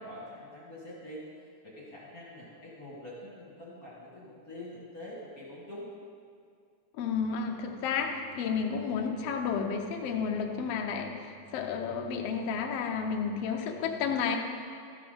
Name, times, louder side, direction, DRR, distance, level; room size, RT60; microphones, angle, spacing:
voice 1, 0.0-5.9, left 1 dB, 35° left, -6 dB, 1.7 m, -45 dB
voice 2, 7.0-14.4, left 6 dB, 80° left, 2 dB, 1.4 m, -31 dB
13.0 x 6.8 x 5.2 m, 2.3 s
omnidirectional pair, 4.0 m